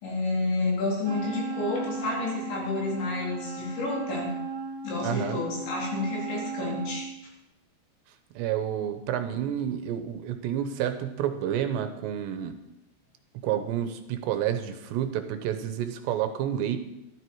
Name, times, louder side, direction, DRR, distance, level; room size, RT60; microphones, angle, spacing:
voice 1, 0.0-4.3 4.8-7.1, left 3 dB, 75° left, -3 dB, 6.1 m, -30 dB
Wind instrument woodwind instrument, 1.0-7.2, right 4 dB, 45° right, 2.9 m, -36 dB
voice 2, 5.0-5.4 8.4-12.6 13.4-16.8, right 10 dB, 80° right, 8 dB, 3.0 m, -29 dB
14.5 x 12.0 x 4.7 m, 0.91 s
omnidirectional pair, 5.2 m